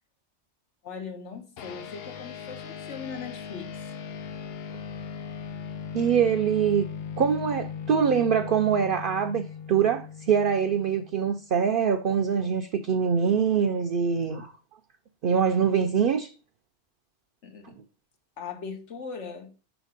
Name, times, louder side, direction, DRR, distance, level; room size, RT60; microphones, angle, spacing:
voice 1, 0.8-3.7 17.4-17.8 18.4-19.5, left 5 dB, 80° left, 1.4 m, -39 dB
sound 1, 1.6-11.3, left 7 dB, 60° left, 0.8 m, -38 dB
voice 2, 5.9-6.8 7.2-14.5 15.2-16.3, right 7 dB, 60° right, 0.6 m, -24 dB
5.7 x 4.0 x 4.9 m
omnidirectional pair, 1.2 m